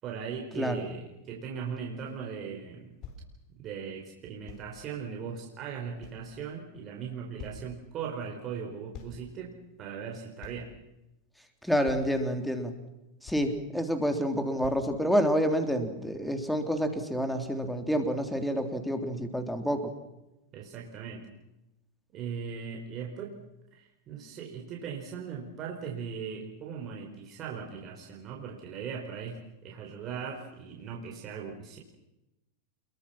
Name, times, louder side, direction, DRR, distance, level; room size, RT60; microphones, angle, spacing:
voice 1, 0.0-3.0 3.6-10.7 20.5-21.3 22.1-23.3 23.7-31.8, right 6 dB, 35° right, -1 dB, 4.9 m, -39 dB
voice 2, 0.5-0.8 11.6-12.7 13.2-19.9, equal, ahead, 6 dB, 3.4 m, -28 dB
sound 1, 2.4-2.5 3.0-3.2 4.5-4.7 5.5-5.6 6.0-6.7 7.0-7.1 7.4-7.6 8.9-9.2 9.5-9.6 10.4-10.6 11.3-11.4 11.8-12.2 12.9-13.0 13.3-13.6 14.0-14.1 14.6-14.9 15.5-15.6, left 6 dB, 45° left, 5.2 m, -46 dB
28.5 x 22.5 x 6.0 m, 0.93 s
supercardioid pair, 130°, 0 cm